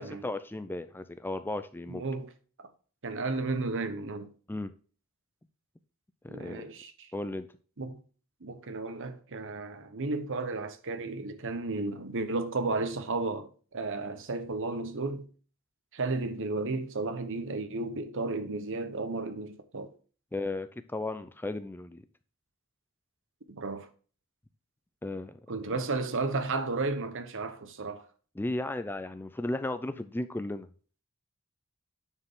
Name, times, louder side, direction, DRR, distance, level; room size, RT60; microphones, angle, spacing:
voice 1, 0.0-2.0 4.5-4.7 6.2-6.7 7.1-7.5 20.3-22.0 25.0-25.4 25.7-25.8 28.4-30.7, left 2 dB, 10° left, 0.4 m, -35 dB
voice 2, 1.9-2.3 2.6-2.7 3.0-4.3 6.3-7.1 7.8-8.0 8.4-15.3 15.9-19.9 23.5-23.9 25.5-28.0, right 3 dB, 60° right, 1.0 m, -33 dB
9.9 x 4.7 x 3.7 m
head